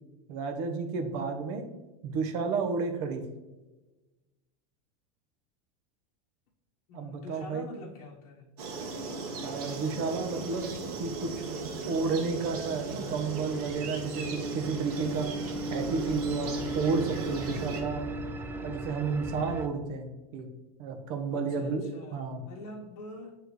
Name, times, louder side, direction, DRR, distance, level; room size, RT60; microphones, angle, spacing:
voice 1, 0.3-1.7 2.0-3.2 6.9-7.7 9.4-11.3 11.8-15.3 15.7-18.0 18.6-20.5 20.8-22.4, right 4 dB, 50° right, 6 dB, 1.0 m, -32 dB
voice 2, 6.9-8.5 21.3-23.4, left 2 dB, 55° left, -4 dB, 1.2 m, -45 dB
sound 1, 8.6-17.8, right 3 dB, 85° right, 1.3 m, -38 dB
sound 2, 10.6-19.7, right 1 dB, 10° right, 0.3 m, -38 dB
9.2 x 3.3 x 3.2 m, 1.1 s
supercardioid pair, 145°, 19 cm